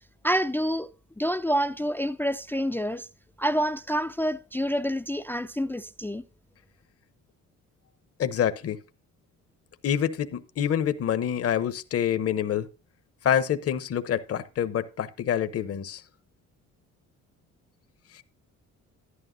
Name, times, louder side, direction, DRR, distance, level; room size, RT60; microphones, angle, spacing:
voice 1, 0.2-0.9 1.2-3.1 3.4-6.2, equal, 5° left, 0.4 m, -27 dB
voice 2, 8.2-8.8 9.8-12.7 13.2-16.0 18.1-18.2, left 9 dB, 50° left, 0.8 m, -26 dB
11.5 x 10.5 x 2.6 m
cardioid pair, 90°, 30 cm